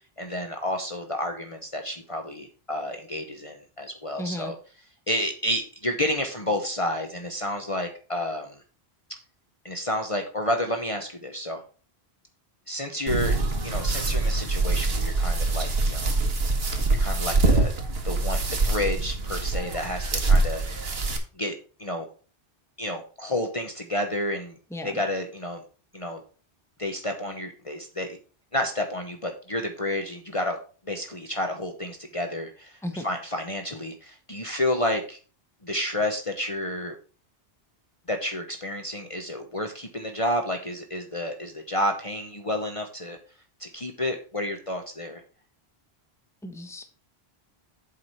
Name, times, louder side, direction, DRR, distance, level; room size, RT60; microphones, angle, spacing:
voice 1, 0.2-4.6 5.1-8.6 9.6-11.6 12.7-13.4 13.6-16.2 16.5-17.7 18.0-20.6 21.4-21.5 21.8-22.1 22.8-24.6 24.8-25.6 25.9-26.2 26.8-28.2 28.5-30.6 30.9-35.2 35.6-36.9 38.1-43.2 43.6-45.2, left 1 dB, 35° left, 4 dB, 1.0 m, -30 dB
voice 2, 4.2-4.5 24.7-25.0 32.8-33.1 46.4-46.8, left 1 dB, 5° left, 5 dB, 1.1 m, -34 dB
sound 1, 13.1-21.2, right 3 dB, 70° right, 1.6 m, -24 dB
7.7 x 4.9 x 5.7 m, 0.37 s
omnidirectional pair, 1.1 m